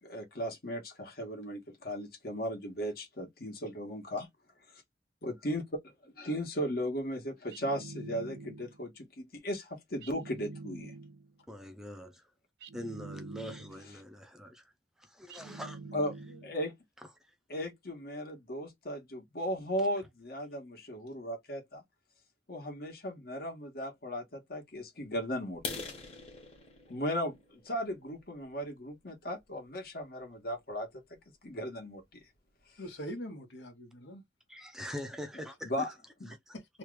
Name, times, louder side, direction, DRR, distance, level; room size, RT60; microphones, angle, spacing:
voice 1, 0.0-4.3 4.7-4.8 5.2-10.9 15.9-16.1 16.4-16.7 17.5-21.8 22.5-25.9 26.9-31.0 31.4-32.0 35.6-35.9 36.2-36.3, equal, 60° left, 1.3 m, -36 dB
sound 1, 7.5-8.9 10.0-11.3 12.6-14.0 15.3-16.7, right 3 dB, 65° right, 0.4 m, -46 dB
voice 2, 11.5-12.3 12.7-14.6 15.0-15.8 34.5-35.9 36.3-36.4, equal, 5° right, 0.5 m, -43 dB
voice 3, 15.4-16.4 32.8-34.2, equal, 85° left, 1.2 m, -44 dB
sound 2, 25.5-29.3 29.8-30.0 30.5-30.6 31.0-31.2 31.5-31.6 32.0-32.1 32.3-32.8, left 4 dB, 35° left, 1.2 m, -44 dB
3.1 x 2.4 x 3.2 m
head